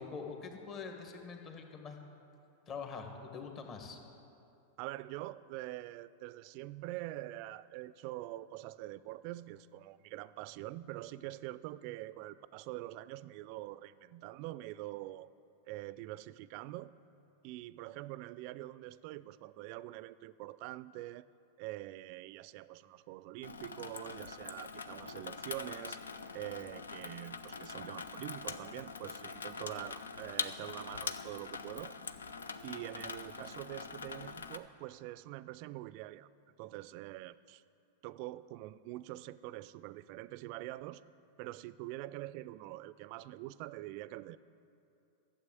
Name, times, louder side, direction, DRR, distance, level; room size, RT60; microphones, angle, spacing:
voice 1, 0.0-2.0 2.7-4.0 32.9-33.1, left 5 dB, 35° left, 3 dB, 1.7 m, -44 dB
voice 2, 4.8-15.3 15.7-16.9 17.4-21.3 21.6-26.0 26.3-31.9 32.6-36.3 36.6-37.6 38.0-41.0 41.4-44.4, right 16 dB, 55° right, 17 dB, 0.4 m, -45 dB
Water tap faucet / Sink (filling or washing), 23.4-34.6, left 4 dB, 85° left, 0.5 m, -43 dB
12.5 x 7.7 x 7.6 m, 2.8 s
hypercardioid pair, 95°, 0 cm